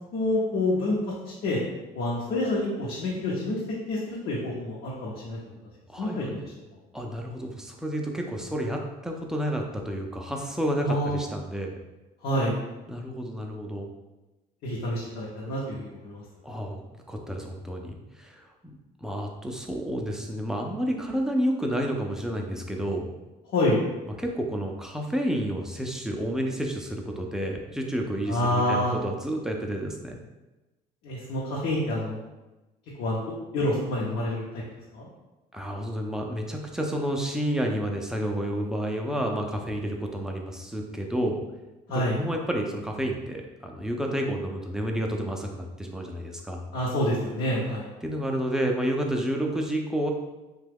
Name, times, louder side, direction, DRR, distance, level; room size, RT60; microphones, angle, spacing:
voice 1, 0.1-1.0 1.4-1.6 1.9-3.6 3.9-5.4 6.0-6.4 10.8-11.2 12.2-12.5 14.6-16.2 23.5-23.8 28.3-28.9 31.0-32.2 33.0-33.2 33.5-34.6 34.9-35.1 41.9-42.2 46.7-47.9, left 1 dB, 75° left, -5 dB, 0.7 m, -27 dB
voice 2, 5.9-6.3 6.9-11.8 12.9-13.9 16.4-16.8 17.1-18.5 19.0-23.1 24.2-30.2 35.5-41.4 42.2-46.6 48.0-50.1, equal, 5° right, 1 dB, 0.4 m, -30 dB
2.9 x 2.3 x 3.4 m, 1.1 s
cardioid pair, 110°, 17 cm